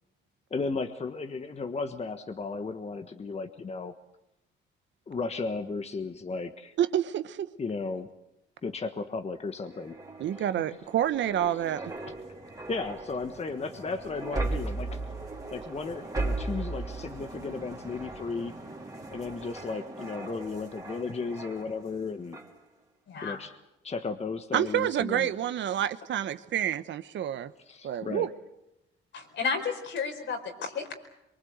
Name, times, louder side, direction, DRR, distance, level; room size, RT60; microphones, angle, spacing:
voice 1, 0.5-3.9 5.1-6.7 7.6-8.1 8.6-10.0 12.7-15.0 15.5-18.5 19.1-22.4 23.2-23.5 23.8-25.3 27.7-28.3, left 4 dB, 30° left, 7 dB, 1.4 m, -34 dB
voice 2, 6.8-7.5 10.2-11.8 24.5-27.5 27.8-28.3, right 11 dB, 70° right, 13 dB, 1.1 m, -28 dB
sound 1, 9.6-22.0 22.3-22.6, right 2 dB, 20° right, 3.6 m, -37 dB
voice 3, 23.1-23.4 29.1-30.9, left 5 dB, 70° left, 4 dB, 4.7 m, -32 dB
23.5 x 23.5 x 8.1 m, 0.90 s
cardioid pair, 90°, 20 cm